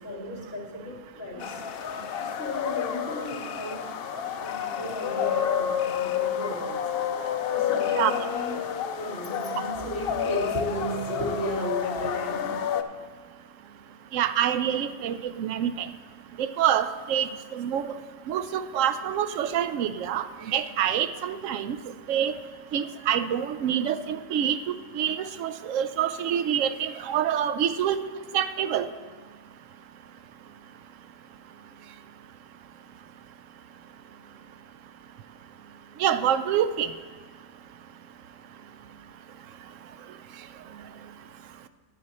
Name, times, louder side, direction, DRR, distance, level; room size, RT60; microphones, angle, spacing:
voice 1, 0.0-1.6 2.2-3.8 4.4-6.8 7.5-8.6 9.0-12.6, equal, 45° left, -3 dB, 2.7 m, -34 dB
sound 1, 1.4-12.8, left 8 dB, 65° left, 0.6 m, -30 dB
voice 2, 14.1-15.9 16.4-17.9 18.3-21.8 22.1-22.3 22.7-24.6 24.9-28.0 28.3-28.9 36.0-36.9, right 9 dB, 70° right, 12 dB, 0.9 m, -26 dB
10.5 x 9.3 x 4.2 m, 1.5 s
omnidirectional pair, 1.4 m